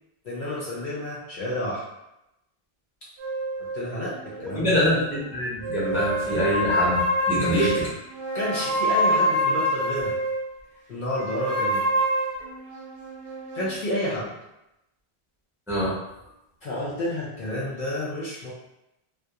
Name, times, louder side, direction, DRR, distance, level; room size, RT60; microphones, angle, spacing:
voice 1, 0.2-1.8 3.6-4.9 7.4-7.7 8.3-10.2 10.9-11.9 13.5-14.3 16.6-18.5, left 1 dB, 60° left, -6 dB, 0.7 m, -30 dB
sound 1, 3.2-5.2 5.6-10.5 11.2-13.8, equal, 65° right, 0.7 m, -26 dB
voice 2, 4.5-5.0 5.3-7.0 7.3-7.8 15.7-15.9, equal, 5° right, -7 dB, 0.6 m, -24 dB
2.3 x 2.0 x 2.8 m, 0.90 s
omnidirectional pair, 1.1 m